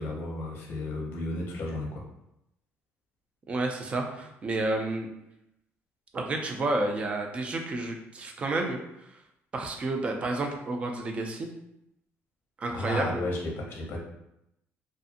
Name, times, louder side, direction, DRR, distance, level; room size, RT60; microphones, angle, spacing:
voice 1, 0.0-2.0 12.7-14.0, left 1 dB, 45° left, -1 dB, 0.6 m, -33 dB
voice 2, 3.5-5.1 6.1-8.8 9.5-11.5 12.6-13.2, right 2 dB, 25° right, 3 dB, 0.3 m, -30 dB
2.5 x 2.4 x 2.5 m, 0.83 s
cardioid pair, 170°, 5 cm